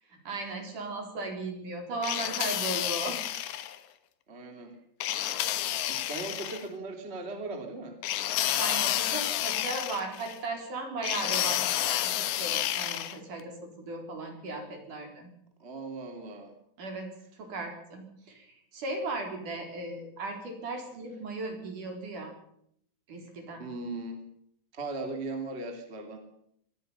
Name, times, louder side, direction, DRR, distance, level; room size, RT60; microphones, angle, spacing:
voice 1, 0.1-3.2 8.4-15.3 16.8-17.1 17.4-22.3 23.1-23.7, right 2 dB, 40° right, 3 dB, 5.1 m, -37 dB
sound 1, 2.0-3.8 5.0-6.6 8.0-10.4 11.0-13.2, left 13 dB, 70° left, 3.2 m, -30 dB
voice 2, 4.3-4.7 5.9-8.0 15.6-16.5 23.6-24.2 24.7-26.2, right 2 dB, 20° right, 5 dB, 1.7 m, -38 dB
24.5 x 19.0 x 5.7 m, 0.70 s
omnidirectional pair, 5.8 m